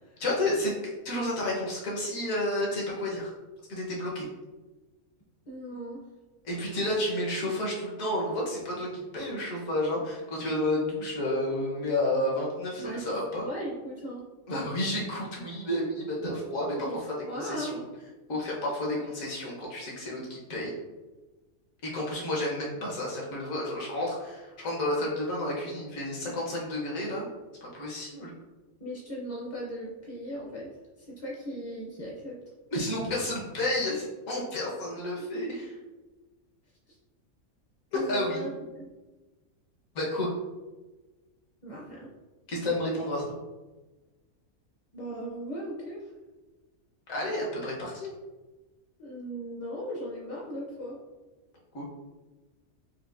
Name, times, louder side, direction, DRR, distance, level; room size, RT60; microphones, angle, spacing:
voice 1, 0.2-3.3 3.7-4.2 6.4-13.5 14.5-17.8 18.3-20.7 21.8-27.2 27.6-28.3 32.7-35.8 37.9-38.5 39.9-40.3 42.5-43.3 47.1-48.1 51.7-51.8, left 1 dB, 70° left, -3 dB, 1.4 m, -31 dB
voice 2, 5.5-6.0 12.8-13.2 13.4-14.3 16.8-17.0 17.3-17.8 28.8-30.7 31.2-32.3 37.9-38.5 38.8-38.9 41.6-42.1 44.9-46.0 49.0-51.0, equal, 40° left, -4 dB, 0.5 m, -37 dB
5.7 x 2.5 x 2.5 m, 1.2 s
omnidirectional pair, 1.5 m